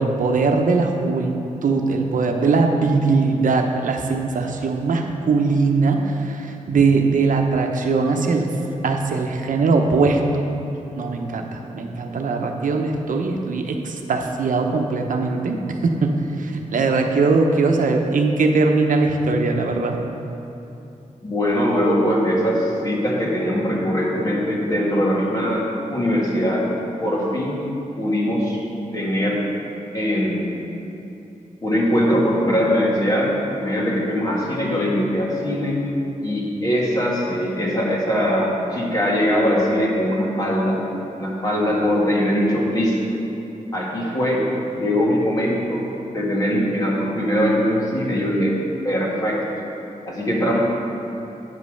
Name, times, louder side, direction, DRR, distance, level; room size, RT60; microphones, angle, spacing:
voice 1, 0.0-8.5 8.8-10.4 11.0-20.0, right 3 dB, 75° right, 3 dB, 0.8 m, -20 dB
voice 2, 21.2-26.7 27.0-27.6 28.0-28.6 28.9-29.4 29.9-30.6 31.6-35.8 36.2-40.8 41.2-43.0 43.7-44.4 44.8-45.9 46.1-48.6 48.8-49.4 50.1-50.6, equal, 25° left, -4 dB, 1.7 m, -21 dB
9.2 x 5.3 x 6.4 m, 2.9 s
wide cardioid pair, 170°, 14 cm